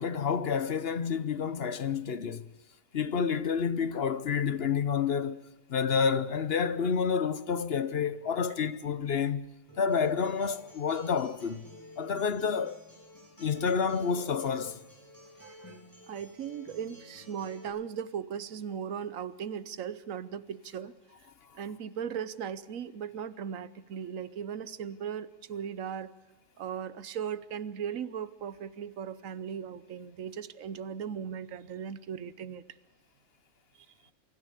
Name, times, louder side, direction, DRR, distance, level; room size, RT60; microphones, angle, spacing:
voice 1, 0.0-2.5 2.9-5.4 5.7-9.5 9.8-11.6 12.0-12.8 13.4-14.8, left 6 dB, 55° left, 1.0 m, -29 dB
Acoustic guitar, 9.7-17.7, left 1 dB, 15° left, 6.7 m, -51 dB
voice 2, 15.4-20.9 21.5-26.1 26.6-32.6, right 8 dB, 75° right, 1.2 m, -38 dB
23.5 x 14.0 x 8.3 m
omnidirectional pair, 1.4 m